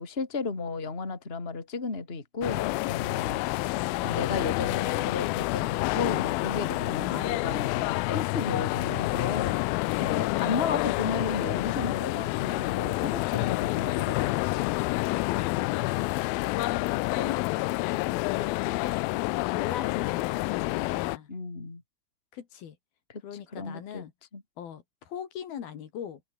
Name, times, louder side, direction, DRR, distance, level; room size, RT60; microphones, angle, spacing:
voice 1, 0.0-3.7 4.0-9.6 10.0-14.7 21.3-21.8 23.5-24.0 24.3-24.4, left 4 dB, 15° left, 2.9 m, -34 dB
sound 1, 2.4-21.2, left 23 dB, 90° left, 2.0 m, -28 dB
voice 2, 3.5-4.3 7.0-7.4 10.3-10.9 15.2-16.1 16.5-21.3 22.3-22.8 23.2-24.1 24.6-26.2, left 9 dB, 65° left, 4.0 m, -40 dB
omnidirectional pair, 4.7 m